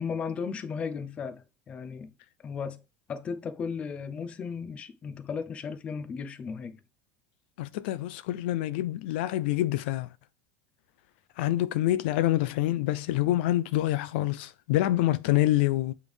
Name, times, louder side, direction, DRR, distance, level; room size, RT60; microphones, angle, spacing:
voice 1, 0.0-2.1 2.4-2.8 3.1-6.8, left 6 dB, 20° left, 0.6 m, -35 dB
voice 2, 7.6-10.1 11.4-15.9, left 15 dB, 70° left, 0.4 m, -26 dB
8.2 x 3.4 x 3.4 m
cardioid pair, 170°, 6 cm